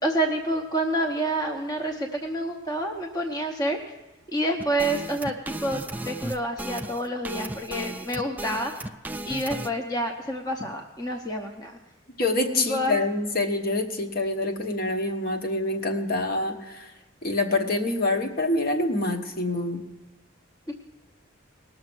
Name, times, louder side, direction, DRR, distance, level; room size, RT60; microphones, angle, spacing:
voice 1, 0.0-3.8 4.3-8.9 9.3-11.8 12.5-13.0, right 1 dB, 20° left, 2 dB, 0.8 m, -28 dB
sound 1, 4.6-9.7, right 2 dB, 10° right, 0.3 m, -35 dB
voice 2, 12.2-16.9 17.2-19.8, left 2 dB, 45° left, 4 dB, 1.1 m, -26 dB
19.0 x 6.6 x 6.1 m, 1.1 s
head